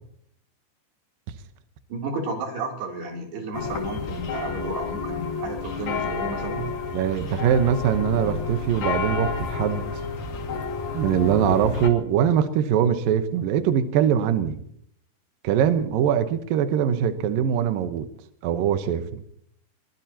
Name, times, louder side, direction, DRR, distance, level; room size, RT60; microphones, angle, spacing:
voice 1, 1.9-6.7, right 3 dB, 60° right, 1 dB, 5.1 m, -32 dB
sound 1, 3.5-11.9, left 5 dB, 50° left, 2.9 m, -30 dB
voice 2, 6.9-9.8 10.9-14.6 15.4-18.1 18.4-19.2, right 9 dB, 80° right, 8 dB, 2.0 m, -22 dB
22.5 x 22.0 x 2.9 m, 0.68 s
omnidirectional pair, 5.5 m